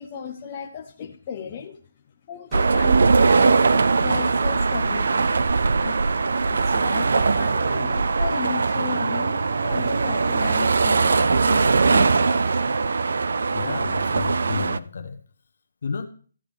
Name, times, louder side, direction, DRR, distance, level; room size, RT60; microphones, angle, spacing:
voice 1, 0.0-1.8 2.3-5.4 5.8-6.0 6.4-12.8, left 7 dB, 25° left, 0.6 m, -35 dB
sound 1, 2.5-2.9 4.7-5.0 7.2-7.5 9.9-10.1 12.0-12.3 14.1-14.3, right 2 dB, 10° right, 1.9 m, -36 dB
sound 2, 2.5-14.8, right 4 dB, 65° right, 0.4 m, -21 dB
voice 2, 13.5-15.2 15.8-16.0, left 5 dB, 55° left, 1.1 m, -31 dB
14.0 x 8.8 x 3.4 m
hypercardioid pair, 170°, 0 cm